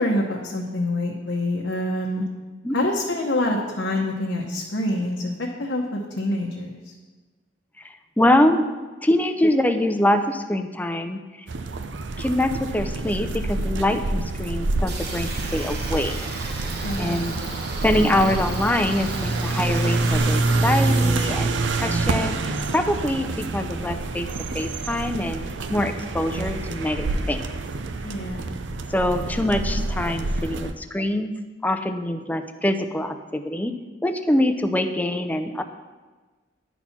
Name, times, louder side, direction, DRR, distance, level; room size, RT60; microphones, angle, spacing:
voice 1, 0.0-2.2 2.7-5.3 5.6-6.9 16.8-17.2 28.0-28.5, left 1 dB, 85° left, -2 dB, 0.9 m, -26 dB
voice 2, 7.8-8.6 9.0-11.2 12.2-16.1 17.0-17.4 17.8-24.3 24.5-25.4 25.7-27.4 28.9-31.3 31.6-33.7 34.0-35.6, left 1 dB, 10° left, 8 dB, 0.5 m, -24 dB
sound 1, 11.5-30.7, right 2 dB, 80° right, 0.6 m, -27 dB
sound 2, 14.9-21.2, right 3 dB, 60° right, 1.3 m, -35 dB
10.0 x 4.2 x 5.8 m, 1.3 s
head